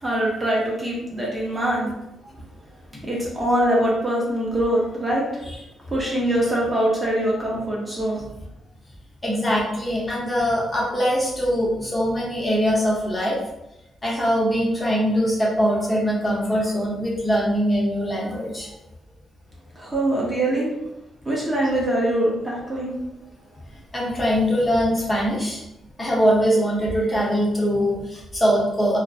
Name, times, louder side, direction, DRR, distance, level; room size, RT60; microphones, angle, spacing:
voice 1, 0.0-1.9 2.2-2.3 3.0-5.4 5.9-8.2 19.8-20.7 21.2-22.9, right 1 dB, 15° right, -5 dB, 0.6 m, -23 dB
voice 2, 9.2-13.4 14.0-18.7 23.9-25.6 26.0-29.0, equal, 20° left, -5 dB, 0.7 m, -22 dB
2.5 x 2.0 x 2.4 m, 0.88 s
cardioid pair, 125°, 0 cm